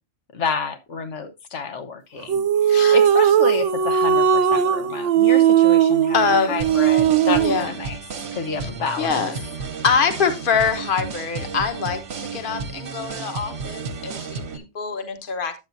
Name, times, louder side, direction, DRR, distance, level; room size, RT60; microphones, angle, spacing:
voice 1, 0.3-8.0 8.3-9.3, left 5 dB, 75° left, 1.3 m, -29 dB
sound 1, 2.3-7.7, right 9 dB, 90° right, 1.0 m, -18 dB
voice 2, 2.7-3.0 6.1-6.6 7.3-7.7 9.0-15.5, left 5 dB, 50° left, 1.2 m, -24 dB
sound 2, 6.6-14.6, right 4 dB, 65° right, 1.1 m, -33 dB
9.6 x 8.0 x 2.6 m
omnidirectional pair, 1.2 m